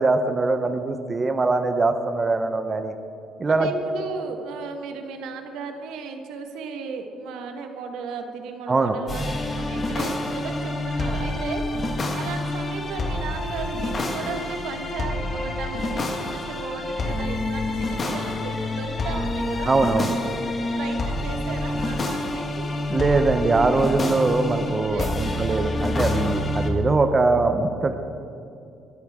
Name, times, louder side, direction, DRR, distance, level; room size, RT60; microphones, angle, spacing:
voice 1, 0.0-2.9 3.4-3.7 8.7-8.9 19.7-20.1 22.9-27.9, right 3 dB, 25° right, 7 dB, 0.8 m, -22 dB
voice 2, 3.4-19.7 20.8-22.7 24.9-26.0, right 5 dB, 85° right, 5 dB, 1.5 m, -36 dB
sound 1, 9.1-26.7, left 2 dB, 30° left, 1.6 m, -27 dB
20.5 x 13.0 x 3.6 m, 2.6 s
cardioid pair, 130°, 0 cm